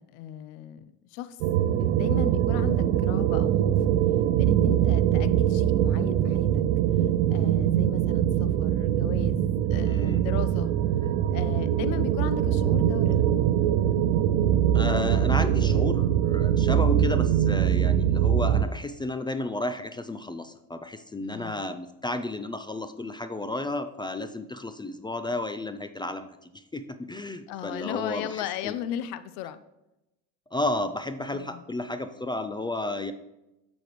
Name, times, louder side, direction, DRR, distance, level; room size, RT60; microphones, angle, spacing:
voice 1, 0.0-1.4 1.8-3.8 4.3-6.6 7.3-10.7 11.3-13.3 21.2-21.6 27.5-29.6 31.3-31.6, left 11 dB, 80° left, 13 dB, 0.6 m, -36 dB
sound 1, 1.4-18.7, right 10 dB, 85° right, 0.6 m, -23 dB
voice 2, 9.9-10.2 14.7-28.8 30.5-33.1, left 2 dB, 10° left, 10 dB, 0.4 m, -32 dB
8.2 x 6.3 x 3.0 m, 0.92 s
supercardioid pair, 85°, 38 cm